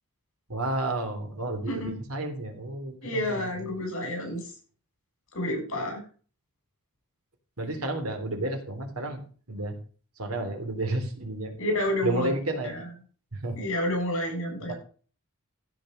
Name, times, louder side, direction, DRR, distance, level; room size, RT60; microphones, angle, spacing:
voice 1, 0.5-3.7 7.6-9.7 10.2-11.5 12.0-12.7 13.3-13.7 14.6-14.7, right 2 dB, 75° right, 4 dB, 3.4 m, -31 dB
voice 2, 3.0-4.4 5.3-6.0 11.6-12.3 12.6-12.7 13.6-14.7, left 1 dB, 60° left, 2 dB, 7.4 m, -29 dB
15.5 x 5.6 x 6.5 m, 0.40 s
head